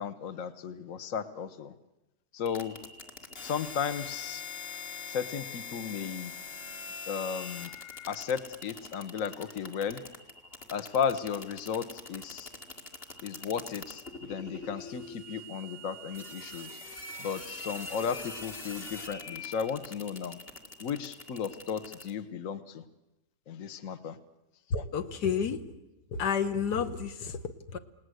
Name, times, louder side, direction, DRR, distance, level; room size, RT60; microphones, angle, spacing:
voice 1, 0.0-1.7 2.3-2.7 3.4-4.4 5.1-6.3 7.1-7.7 8.1-10.0 10.7-12.5 13.2-16.7 17.2-20.4 20.8-22.8 23.5-24.2, left 7 dB, 55° left, 12 dB, 1.5 m, -34 dB
sound 1, 2.5-22.1, left 3 dB, 35° left, 2.2 m, -43 dB
voice 2, 24.7-25.7 26.1-27.8, left 6 dB, 80° left, 9 dB, 1.8 m, -31 dB
28.5 x 18.5 x 7.9 m, 0.97 s
omnidirectional pair, 1.7 m